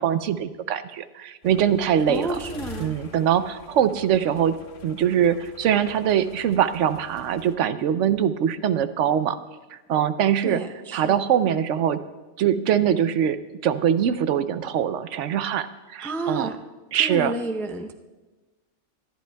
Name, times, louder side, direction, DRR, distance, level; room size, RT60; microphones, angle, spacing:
voice 1, 0.0-2.4 2.8-4.6 4.8-9.4 9.7-10.6 10.9-12.0 12.4-16.5 16.9-17.3, right 9 dB, 80° right, 12 dB, 0.9 m, -23 dB
sound 1, 1.4-7.6, left 3 dB, 45° left, 1.0 m, -45 dB
voice 2, 2.1-2.9 10.4-11.2 16.0-16.6 17.0-17.9, right 2 dB, 5° left, 6 dB, 0.3 m, -31 dB
24.5 x 11.5 x 2.3 m, 1.2 s
omnidirectional pair, 1.3 m